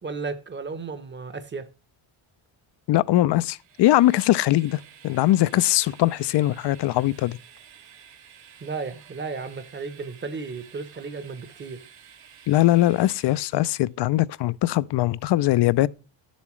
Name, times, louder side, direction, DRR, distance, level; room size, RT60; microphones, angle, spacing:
voice 1, 0.0-1.7 8.6-11.9, right 4 dB, 20° right, 0.8 m, -34 dB
voice 2, 2.9-7.4 12.5-15.9, left 15 dB, 55° left, 0.5 m, -21 dB
Train, 3.4-13.9, right 8 dB, 90° right, 1.9 m, -51 dB
11.0 x 7.2 x 3.1 m
cardioid pair, 145°, 49 cm